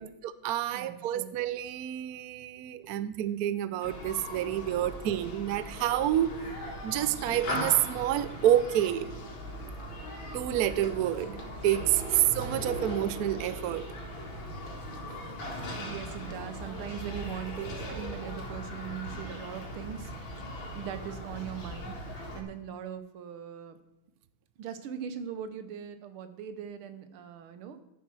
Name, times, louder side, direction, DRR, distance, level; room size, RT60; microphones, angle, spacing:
voice 1, 0.2-6.5 6.8-9.1 10.3-13.9, right 12 dB, 70° right, 14 dB, 0.9 m, -28 dB
voice 2, 0.7-1.3 2.8-2.9 15.8-20.1 20.8-22.0 22.4-23.8 24.6-27.8, right 8 dB, 90° right, 10 dB, 1.8 m, -40 dB
Human group actions, 3.8-22.4, equal, 70° left, 2.7 m, -39 dB
12.0 x 7.1 x 6.2 m, 0.93 s
omnidirectional pair, 2.3 m